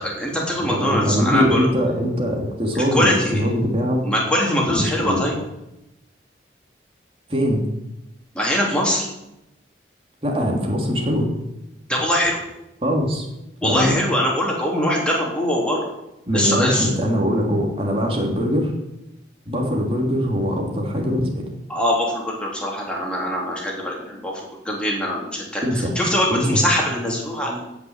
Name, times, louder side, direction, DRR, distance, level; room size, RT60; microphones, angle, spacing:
voice 1, 0.0-1.7 2.7-3.4 4.0-5.4 8.3-9.1 11.9-12.4 13.6-15.8 16.3-16.9 21.7-24.4 24.6-27.6, left 1 dB, 5° left, -3 dB, 3.3 m, -22 dB
voice 2, 0.6-4.1 4.7-5.2 7.3-7.7 10.2-11.3 12.8-13.3 13.6-14.0 16.3-18.7 19.5-21.4 25.6-26.0 26.3-26.6, equal, 30° right, 0 dB, 2.9 m, -22 dB
16.5 x 6.2 x 8.1 m, 0.90 s
head